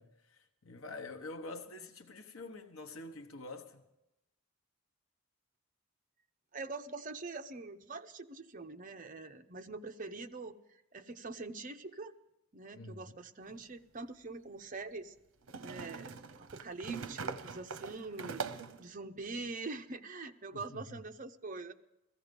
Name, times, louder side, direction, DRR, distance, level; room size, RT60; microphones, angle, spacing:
voice 1, 0.0-3.8 12.7-13.2 20.5-21.0, left 2 dB, 80° left, 1.1 m, -47 dB
voice 2, 6.5-10.5 10.9-12.1 12.5-15.1 15.6-18.4 18.8-21.7, right 3 dB, 40° right, 0.7 m, -44 dB
sound 1, 13.5-13.6 15.5-18.8, right 5 dB, 75° right, 0.8 m, -42 dB
16.0 x 15.5 x 5.3 m
head